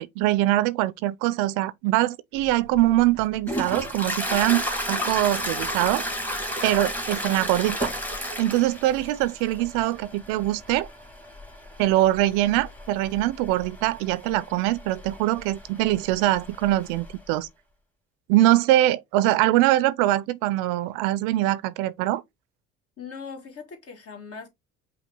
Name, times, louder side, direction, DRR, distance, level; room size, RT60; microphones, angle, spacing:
voice 1, 0.0-4.6 4.9-6.1 6.6-7.9 8.4-10.9 11.8-17.5 18.3-22.2, right 15 dB, 75° right, 0.5 m, -23 dB
Toilet flush, 2.4-17.2, equal, 5° left, 1.3 m, -33 dB
voice 2, 23.0-24.5, left 5 dB, 45° left, 1.5 m, -40 dB
5.3 x 2.2 x 3.5 m
hypercardioid pair, 65°, 33 cm